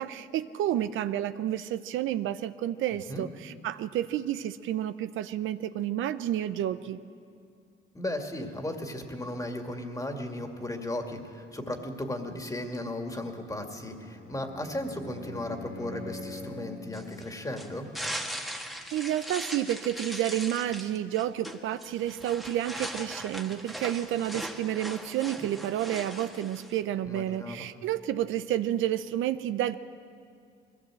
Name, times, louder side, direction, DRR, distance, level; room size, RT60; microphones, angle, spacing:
voice 1, 0.0-7.0 18.9-29.7, right 12 dB, 80° right, 12 dB, 0.6 m, -30 dB
voice 2, 2.9-3.2 7.9-17.9 27.0-27.7, left 1 dB, 15° left, 4 dB, 2.2 m, -36 dB
Bowed string instrument, 13.7-16.9, left 2 dB, 70° left, 4.3 m, -43 dB
sound 1, 16.9-26.8, equal, ahead, 1.5 m, -39 dB
21.0 x 16.5 x 7.7 m, 2.3 s
cardioid pair, 90°, 20 cm